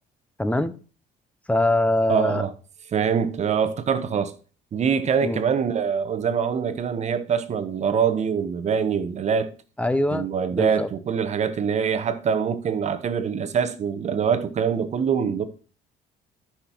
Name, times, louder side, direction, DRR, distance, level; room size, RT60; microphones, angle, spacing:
voice 1, 0.4-0.7 1.5-2.5 5.2-5.4 9.8-10.9, left 1 dB, 10° left, 0.6 m, -23 dB
voice 2, 2.1-2.5 2.9-4.3 4.7-9.5 10.1-15.4, right 7 dB, 40° right, 0.9 m, -24 dB
13.5 x 5.8 x 3.0 m
cardioid pair, 110°, 17 cm